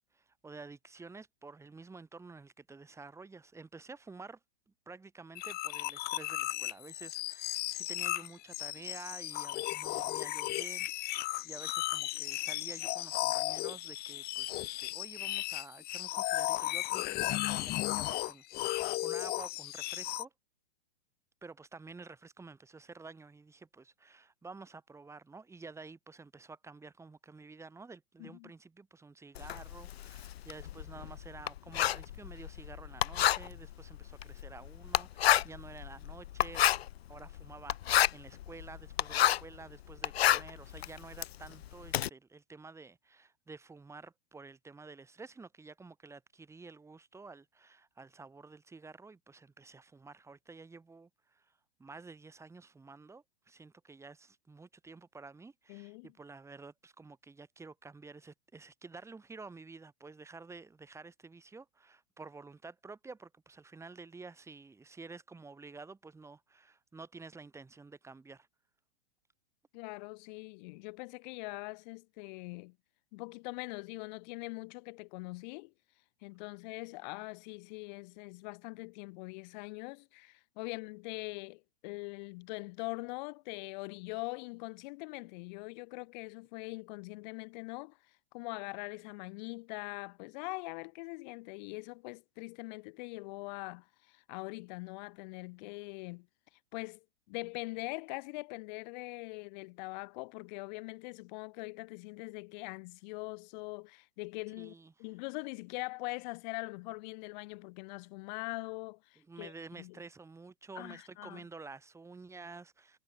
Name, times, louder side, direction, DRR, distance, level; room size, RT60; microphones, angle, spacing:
voice 1, 0.1-4.4 4.8-20.3 21.4-36.6 37.1-51.5 51.8-68.5 104.6-104.9 109.2-113.0, right 4 dB, 10° right, 3.4 m, -51 dB
sound 1, 5.4-20.3, left 17 dB, 30° left, 1.6 m, -35 dB
voice 2, 28.2-28.5 55.7-56.1 69.7-72.8 73.1-75.7 76.2-88.0 88.3-96.3 96.7-104.7 105.0-110.0 110.8-111.4, left 27 dB, 45° left, 2.0 m, -42 dB
Writing, 29.3-39.6 39.9-42.1, left 12 dB, 80° left, 0.7 m, -30 dB
hypercardioid pair, 125°, 31 cm